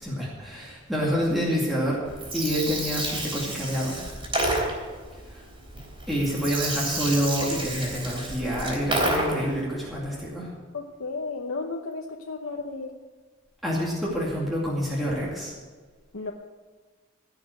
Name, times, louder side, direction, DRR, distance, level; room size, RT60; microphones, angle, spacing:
voice 1, 0.0-2.0 2.3-4.0 5.3-5.4 6.1-10.5 13.6-15.5, equal, ahead, -6 dB, 2.4 m, -27 dB
Gurgling, 2.1-9.6, right 1 dB, 25° right, 3.3 m, -30 dB
voice 2, 10.7-13.0 16.1-16.3, left 3 dB, 90° left, 1 dB, 0.9 m, -33 dB
16.0 x 6.1 x 8.0 m, 1.5 s
head